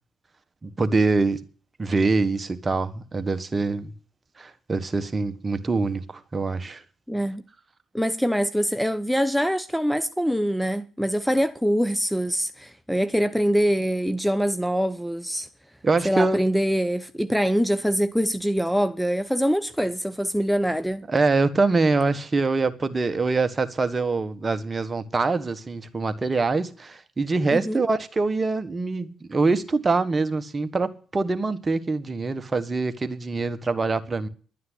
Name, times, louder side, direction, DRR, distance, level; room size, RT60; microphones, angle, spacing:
voice 1, 0.6-1.4 1.8-3.9 4.4-6.8 15.8-16.4 21.1-34.3, right 3 dB, 30° right, 1.5 m, -24 dB
voice 2, 7.1-7.4 7.9-15.5 16.0-21.0 27.5-27.8, equal, ahead, 0.8 m, -24 dB
11.5 x 9.4 x 8.2 m
hypercardioid pair, 55°, 0 cm